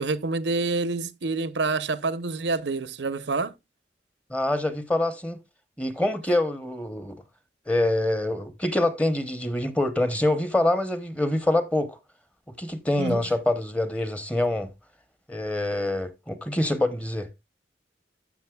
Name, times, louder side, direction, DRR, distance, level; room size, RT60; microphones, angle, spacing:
voice 1, 0.0-3.5 13.0-13.2, right 3 dB, 90° right, 0.7 m, -27 dB
voice 2, 4.3-5.4 5.8-7.2 7.7-12.0 12.6-14.7 15.3-17.3, left 1 dB, 10° left, 0.8 m, -25 dB
14.0 x 6.2 x 2.3 m
head